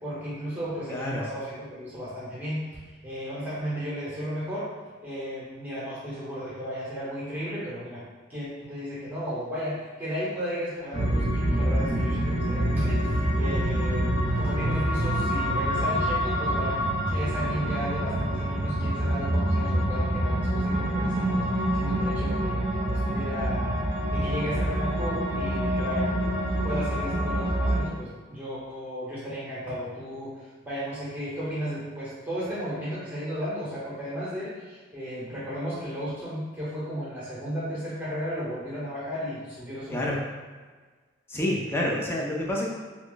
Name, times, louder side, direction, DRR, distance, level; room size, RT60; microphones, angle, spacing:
voice 1, 0.0-4.7 5.0-8.0 8.3-16.8 17.1-21.5 21.7-23.7 24.1-26.1 26.5-40.2, equal, 10° right, -10 dB, 1.0 m, -34 dB
voice 2, 0.9-1.2 39.9-40.3 41.3-42.7, left 1 dB, 10° left, -3 dB, 0.4 m, -28 dB
sound 1, 10.9-27.8, right 1 dB, 35° right, 0.8 m, -26 dB
3.0 x 2.3 x 3.8 m, 1.4 s
head